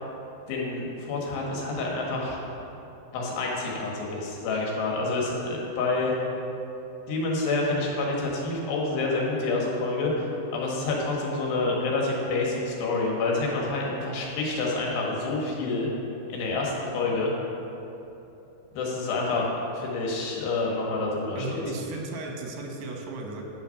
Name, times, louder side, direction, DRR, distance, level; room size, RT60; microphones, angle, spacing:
voice 1, 0.5-2.4 3.1-6.1 7.1-10.3 10.5-15.9 16.3-17.3 18.7-21.7, left 3 dB, 80° left, -2 dB, 3.5 m, -28 dB
voice 2, 21.4-23.4, right 2 dB, 85° right, 1 dB, 3.3 m, -35 dB
10.5 x 5.8 x 5.6 m, 3.0 s
omnidirectional pair, 4.8 m